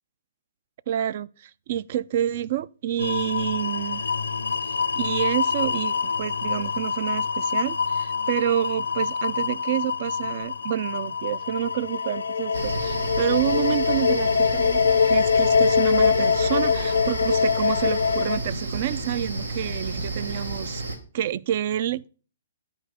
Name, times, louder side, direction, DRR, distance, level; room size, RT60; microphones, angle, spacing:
voice 1, 0.9-4.1 5.0-20.8 21.1-22.1, right 11 dB, 50° right, 0.3 m, -28 dB
sound 1, 3.0-18.4, left 6 dB, 85° left, 0.5 m, -24 dB
sound 2, 12.5-21.0, right 2 dB, 90° right, 1.3 m, -31 dB
8.8 x 4.7 x 5.0 m
hypercardioid pair, 135°, 0 cm